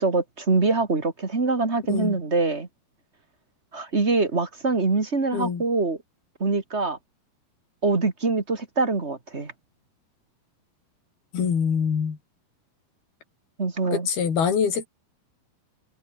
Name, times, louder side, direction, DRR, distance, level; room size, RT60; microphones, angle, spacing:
voice 1, 0.0-2.7 3.7-6.0 6.4-7.0 7.8-9.5 13.6-14.1, right 3 dB, 25° right, 1.6 m, -24 dB
voice 2, 5.3-5.6 11.3-12.2 13.9-14.9, left 7 dB, 70° left, 5.9 m, -24 dB
omnidirectional pair, 4.6 m